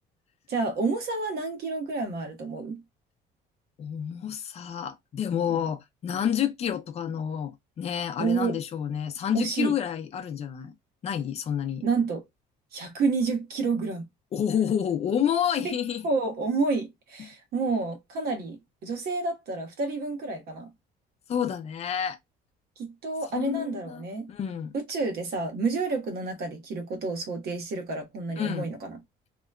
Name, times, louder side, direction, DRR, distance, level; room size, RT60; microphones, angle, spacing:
voice 1, 0.5-2.8 5.5-5.7 8.2-8.6 9.3-9.8 11.8-12.2 12.7-14.1 15.6-15.7 16.0-20.7 22.8-24.3 24.7-29.0, right 4 dB, 60° right, 1.1 m, -29 dB
voice 2, 3.8-10.7 11.0-11.8 14.3-16.0 21.3-22.2 23.3-24.7 28.4-28.7, left 9 dB, 35° left, 0.5 m, -29 dB
2.9 x 2.1 x 2.3 m
cardioid pair, 120°, 18 cm